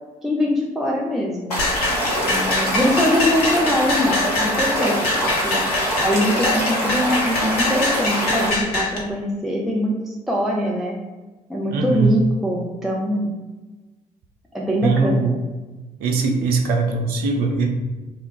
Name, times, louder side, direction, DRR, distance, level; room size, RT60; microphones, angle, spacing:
voice 1, 0.2-1.5 2.2-4.9 5.2-5.6 6.0-11.0 11.5-13.3 14.5-15.3, equal, ahead, -3 dB, 0.4 m, -23 dB
Stream / Liquid, 1.5-8.5, equal, 85° left, 0.5 m, -23 dB
sound 1, 1.6-9.0, left 3 dB, 55° left, 0.9 m, -24 dB
voice 2, 11.7-12.1 14.8-15.3 16.0-17.7, right 3 dB, 55° right, 3 dB, 0.5 m, -20 dB
2.2 x 2.0 x 3.7 m, 1.2 s
figure-of-eight pair, 45°, 19 cm